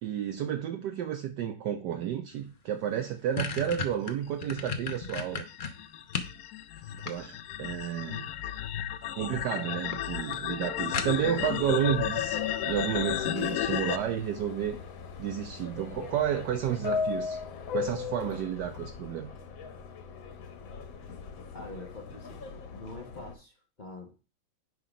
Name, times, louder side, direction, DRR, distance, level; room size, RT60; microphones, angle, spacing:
voice 1, 0.0-5.4 7.0-8.3 9.1-14.7 15.2-17.4 17.7-19.3, right 10 dB, 70° right, 1.2 m, -31 dB
sound 1, 2.5-2.6 2.9-6.4 6.8-7.6 8.7-9.1 9.5-9.6 9.9-10.0 10.3-10.4 10.9-11.5, left 5 dB, 45° left, 0.6 m, -35 dB
sound 2, 4.7-14.0, left 11 dB, 70° left, 1.0 m, -33 dB
Subway metro underground, 10.9-23.3, left 5 dB, 85° left, 1.9 m, -39 dB
voice 2, 21.5-24.2, left 2 dB, 30° left, 1.0 m, -45 dB
9.4 x 3.8 x 5.1 m
omnidirectional pair, 2.0 m